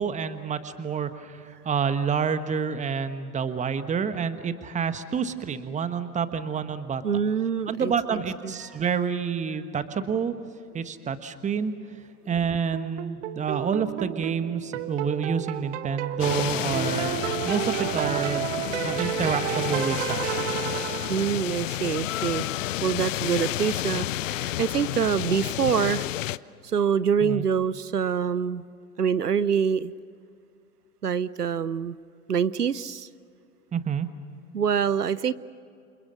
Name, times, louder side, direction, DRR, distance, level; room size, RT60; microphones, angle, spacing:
voice 1, 0.0-7.2 7.7-10.3 10.7-12.0 12.2-18.5 18.8-20.6 27.2-27.5 33.7-34.1, right 6 dB, 15° right, 11 dB, 1.4 m, -28 dB
voice 2, 7.0-8.5 21.1-22.5 22.8-26.1 26.6-28.6 29.0-29.9 31.0-32.0 32.3-33.1 34.5-35.3, right 7 dB, 85° right, 18 dB, 0.7 m, -25 dB
sound 1, 12.7-21.6, right 11 dB, 50° right, 1.3 m, -31 dB
sound 2, 16.2-26.4, left 14 dB, 55° left, 0.7 m, -30 dB
29.5 x 27.5 x 6.5 m, 2.5 s
figure-of-eight pair, 95°, 46 cm